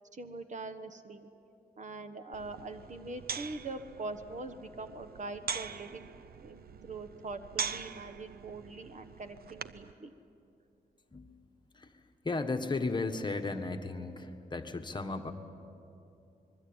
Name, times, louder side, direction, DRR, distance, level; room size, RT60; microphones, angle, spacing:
voice 1, 0.1-1.3 1.8-6.1 6.4-6.6 6.8-10.1, right 3 dB, 50° right, 9 dB, 1.3 m, -43 dB
sound 1, 2.3-9.9, right 6 dB, 75° right, 0.8 m, -42 dB
voice 2, 12.2-15.3, left 3 dB, 30° left, 5 dB, 1.5 m, -35 dB
27.0 x 21.5 x 8.9 m, 2.7 s
wide cardioid pair, 130°, 16 cm